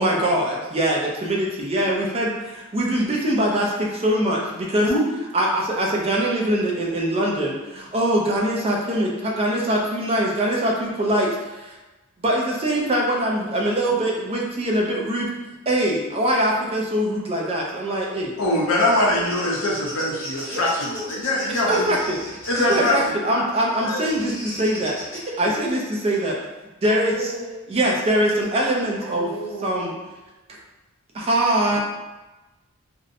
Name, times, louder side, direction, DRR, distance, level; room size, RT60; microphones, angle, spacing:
voice 1, 0.0-4.9 5.3-11.8 12.2-18.3 20.5-20.6 21.5-26.4 26.8-27.3 27.7-29.3 29.6-29.9 31.1-31.8, right 1 dB, 30° right, -2 dB, 0.4 m, -23 dB
voice 2, 18.4-21.9 22.5-23.0 23.3-23.4 23.8-24.0 25.4-25.6, left 1 dB, 75° left, -3 dB, 0.6 m, -22 dB
Bird vocalization bird call bird song, 18.5-23.1 24.1-25.2, equal, 10° left, 1.0 m, -37 dB
voice 3, 26.9-27.7 29.0-30.0, right 2 dB, 70° right, -5 dB, 0.7 m, -34 dB
2.6 x 2.0 x 2.5 m, 1.1 s
head